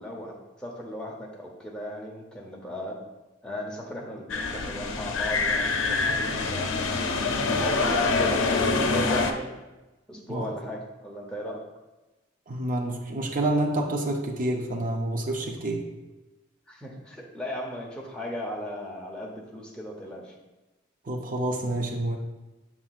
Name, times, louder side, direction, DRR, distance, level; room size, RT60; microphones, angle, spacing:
voice 1, 0.0-3.0 3.4-7.2 7.6-9.5 10.1-11.7 16.7-20.3, equal, 5° left, -2 dB, 0.9 m, -36 dB
sound 1, 4.3-9.3, left 3 dB, 85° left, 0.6 m, -25 dB
voice 2, 12.5-15.9 21.1-22.2, right 1 dB, 40° right, 1 dB, 0.7 m, -28 dB
7.3 x 5.8 x 2.4 m, 1.1 s
head